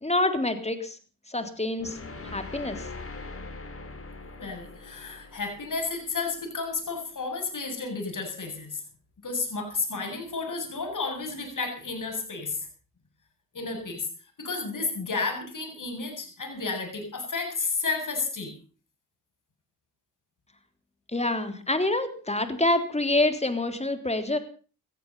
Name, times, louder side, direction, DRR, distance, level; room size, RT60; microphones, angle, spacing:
voice 1, 0.0-1.0 1.3-2.0 2.2-2.9 21.1-24.4, left 2 dB, 15° left, 8 dB, 3.4 m, -26 dB
sound 1, 1.8-6.9, left 3 dB, 35° left, 3.3 m, -42 dB
voice 2, 4.3-8.8 9.2-12.7 13.5-14.1 14.4-18.5, left 4 dB, 50° left, 4 dB, 7.8 m, -32 dB
16.5 x 14.0 x 5.5 m, 0.40 s
supercardioid pair, 55°, 39 cm